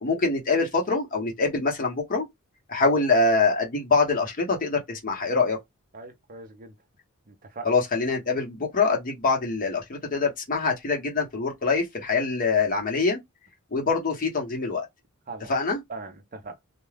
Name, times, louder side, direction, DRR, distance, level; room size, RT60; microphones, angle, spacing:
voice 1, 0.0-2.3 2.7-5.6 7.6-13.2 13.7-14.9 15.5-15.8, left 4 dB, 40° left, 0.9 m, -24 dB
voice 2, 5.9-6.7 7.3-7.7 15.3-15.5 15.9-16.6, right 3 dB, 40° right, 0.7 m, -40 dB
2.4 x 2.3 x 3.2 m
head